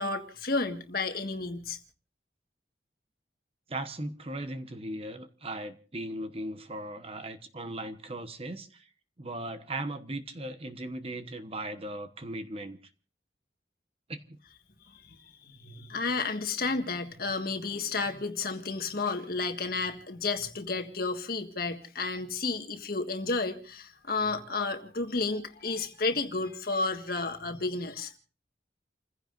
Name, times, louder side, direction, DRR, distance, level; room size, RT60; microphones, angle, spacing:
voice 1, 0.0-1.8 15.0-28.1, left 3 dB, 55° left, 1.7 m, -32 dB
voice 2, 3.7-8.8 9.2-12.8 14.1-14.2, right 1 dB, 35° right, 1.1 m, -38 dB
30.0 x 15.5 x 2.6 m
head